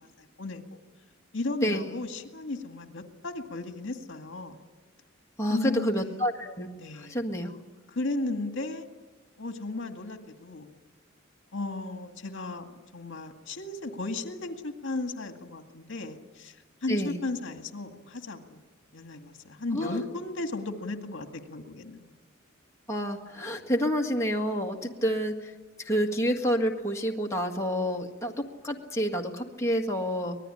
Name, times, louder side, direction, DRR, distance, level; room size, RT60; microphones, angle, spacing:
voice 1, 0.2-0.6 1.3-4.6 5.5-6.2 6.8-7.2 7.9-8.9 9.4-10.7 11.5-16.6 16.8-18.6 18.9-22.0, left 2 dB, 65° left, 5 dB, 2.1 m, -35 dB
voice 2, 5.4-6.7 7.1-7.5 16.9-17.2 19.7-20.0 22.9-25.5 25.8-30.4, equal, 15° left, 0 dB, 1.8 m, -28 dB
25.0 x 20.0 x 10.0 m, 1.2 s
head